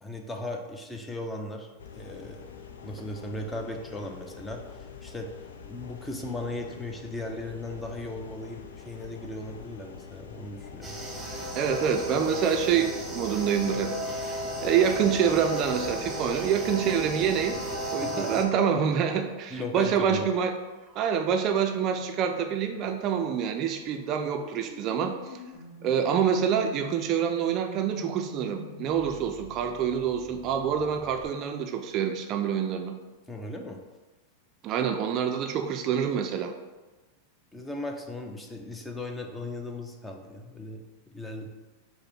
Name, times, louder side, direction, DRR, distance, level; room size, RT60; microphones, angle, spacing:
voice 1, 0.0-1.7 1.9-2.4 2.8-5.3 5.6-10.9 18.0-18.4 19.5-20.3 33.3-33.8 37.5-41.5, left 2 dB, 10° left, 2 dB, 0.6 m, -37 dB
sound 1, 1.8-17.9, left 7 dB, 75° left, 0.4 m, -45 dB
sound 2, 10.8-18.4, equal, 10° right, 1.1 m, -34 dB
voice 2, 11.3-13.9 14.2-14.3 14.6-17.6 17.9-20.5 21.0-25.4 25.8-33.0 34.6-36.5, right 8 dB, 45° right, 5 dB, 0.4 m, -26 dB
sound 3, 20.1-31.2, left 3 dB, 25° left, 1.5 m, -48 dB
4.8 x 2.1 x 4.5 m, 1.2 s
hypercardioid pair, 100°, 0 cm